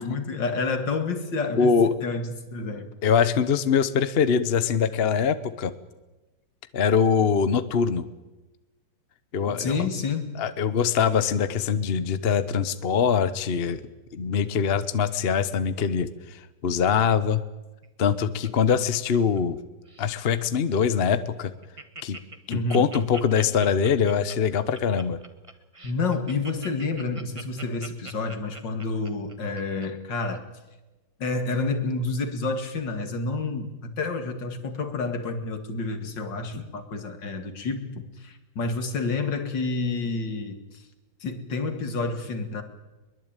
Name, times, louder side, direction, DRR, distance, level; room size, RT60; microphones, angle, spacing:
voice 1, 0.0-2.9 9.6-10.3 22.5-22.8 25.8-30.5 31.2-40.8 41.2-42.6, left 3 dB, 75° left, 7 dB, 2.8 m, -29 dB
voice 2, 1.5-1.9 3.0-5.7 6.7-8.1 9.3-9.9 10.4-13.8 14.1-17.4 18.0-19.6 20.0-21.5 22.0-22.2 22.5-25.2, left 6 dB, 40° left, 13 dB, 1.0 m, -23 dB
Laughter, 17.8-19.6 19.9-20.2 20.7-20.8 21.1-21.2 21.4-29.9 30.3-30.4, right 2 dB, 20° right, 1.3 m, -42 dB
22.5 x 21.5 x 9.0 m, 1.1 s
omnidirectional pair, 2.0 m